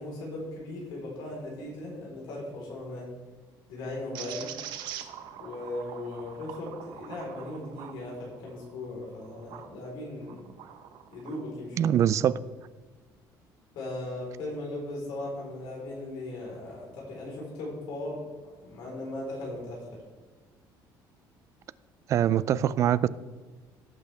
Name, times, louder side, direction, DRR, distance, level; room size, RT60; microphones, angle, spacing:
voice 1, 0.0-3.1 3.7-4.5 5.4-10.5 11.1-12.0 13.7-20.0, left 2 dB, 75° left, -3 dB, 4.2 m, -38 dB
sound 1, 4.1-9.7 10.2-11.4, right 10 dB, 70° right, 1.1 m, -44 dB
voice 2, 11.8-12.4 22.1-23.1, right 10 dB, 40° right, 17 dB, 0.4 m, -23 dB
17.5 x 7.8 x 3.5 m, 1.3 s
cardioid pair, 170°, 8 cm